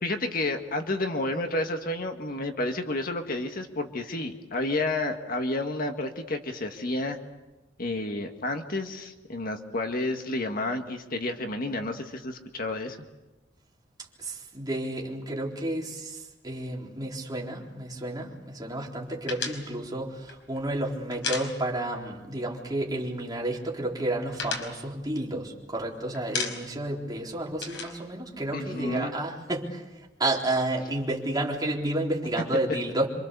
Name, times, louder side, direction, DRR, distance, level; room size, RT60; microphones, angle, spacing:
voice 1, 0.0-7.2 7.8-13.0 28.5-29.1, left 2 dB, 50° left, 5 dB, 1.8 m, -30 dB
voice 2, 14.2-29.8 30.2-33.1, right 1 dB, 20° right, -2 dB, 3.9 m, -31 dB
sound 1, 19.3-22.1 22.3-22.5 22.8-23.5 23.8-25.8 26.1-26.9 27.2-29.0, left 4 dB, 75° left, 5.0 m, -35 dB
27.0 x 26.0 x 6.9 m, 1.1 s
head